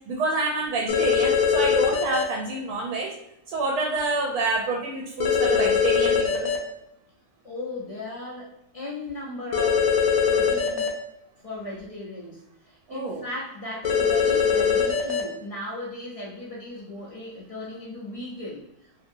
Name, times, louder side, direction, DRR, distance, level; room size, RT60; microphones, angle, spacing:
voice 1, 0.1-3.1 3.5-6.5 12.9-13.2, right 2 dB, 80° right, -2 dB, 1.1 m, -27 dB
sound 1, 0.9-2.2 5.2-6.6 9.5-10.9 13.8-15.2, left 6 dB, 75° left, 1.0 m, -21 dB
voice 2, 7.4-9.9 10.3-11.0 11.4-18.6, left 1 dB, 60° left, -6 dB, 0.3 m, -37 dB
2.8 x 2.7 x 2.5 m, 0.85 s
omnidirectional pair, 1.6 m